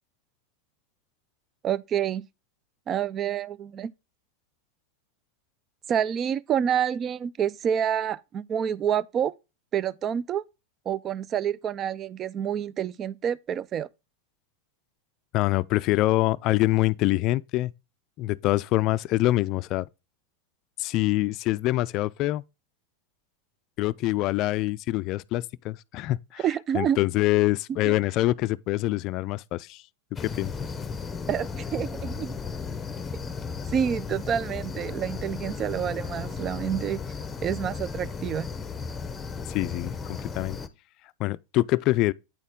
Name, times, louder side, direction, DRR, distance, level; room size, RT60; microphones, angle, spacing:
voice 1, 1.6-2.2 2.9-3.9 5.9-9.3 9.7-10.4 10.9-13.9 26.4-27.0 27.9-28.0 31.3-32.3 33.7-37.0 37.4-38.5, right 9 dB, 35° right, 0.4 m, -28 dB
voice 2, 15.3-17.7 18.2-19.9 20.8-22.4 23.8-26.4 26.7-29.8 30.2-30.5 39.5-40.6 41.2-42.1, left 17 dB, 50° left, 0.3 m, -25 dB
sound 1, 30.2-40.7, left 5 dB, 20° left, 0.8 m, -35 dB
9.0 x 4.3 x 3.6 m
hypercardioid pair, 105°, 0 cm